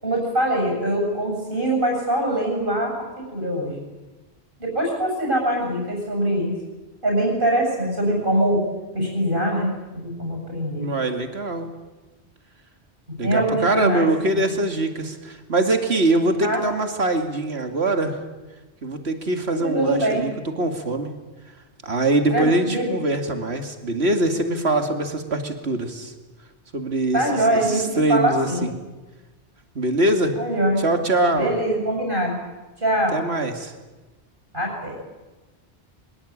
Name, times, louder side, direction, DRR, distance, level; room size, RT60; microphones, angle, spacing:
voice 1, 0.0-3.7 4.6-6.5 7.0-8.6 8.9-10.9 13.2-14.1 14.4-14.5 16.4-16.6 19.5-20.3 22.3-22.9 27.1-28.6 30.4-30.8 31.3-32.3 32.8-33.2 34.5-34.9, right 1 dB, 55° right, 0 dB, 7.6 m, -23 dB
voice 2, 10.8-11.7 13.2-18.2 18.8-20.3 20.6-21.1 21.8-26.1 26.7-27.2 27.7-28.7 29.7-30.4 30.8-31.5 33.1-33.7, right 2 dB, 75° right, 6 dB, 2.7 m, -23 dB
23.5 x 21.5 x 8.8 m, 1.1 s
omnidirectional pair, 1.1 m